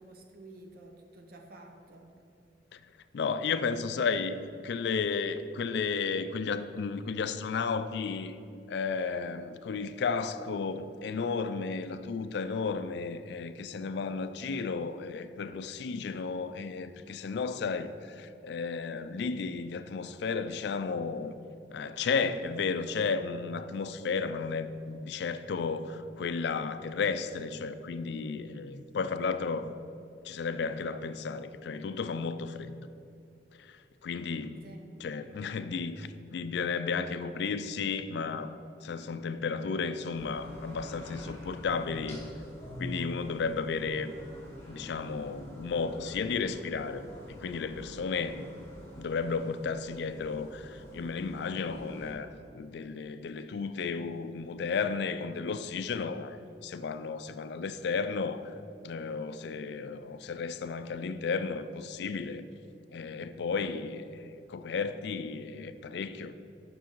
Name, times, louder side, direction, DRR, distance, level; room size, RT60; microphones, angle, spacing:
voice 1, 0.0-2.2 3.5-3.7 34.6-34.9, right 2 dB, 55° right, 0.8 m, -51 dB
voice 2, 3.1-8.4 8.7-21.4 21.7-29.7 30.2-32.8 33.6-34.6 35.0-38.6 38.8-42.2 42.8-44.1 44.7-48.5 49.0-62.5 62.9-66.4, left 5 dB, 70° left, 0.4 m, -33 dB
sound 1, 40.1-52.1, equal, 15° left, 1.9 m, -46 dB
7.1 x 6.2 x 4.5 m
head